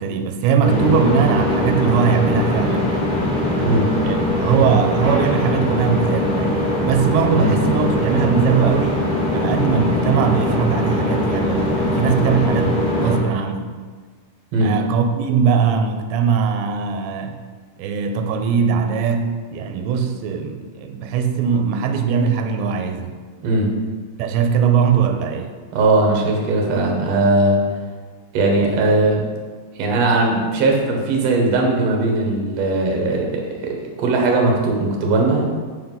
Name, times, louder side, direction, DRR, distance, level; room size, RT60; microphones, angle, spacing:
voice 1, 0.0-3.0 4.0-9.0 9.3-13.7 14.6-17.4 17.8-23.2 24.2-25.5, right 6 dB, 90° right, 6 dB, 3.0 m, -20 dB
sound 1, 0.6-13.2, left 1 dB, 25° left, 1.0 m, -21 dB
voice 2, 3.6-3.9 7.3-7.5 12.2-12.4 14.5-14.7 23.4-23.7 25.7-27.6 28.3-29.2 29.8-35.4, right 2 dB, 60° right, 0 dB, 1.8 m, -19 dB
8.2 x 6.1 x 5.5 m, 1.5 s
omnidirectional pair, 5.0 m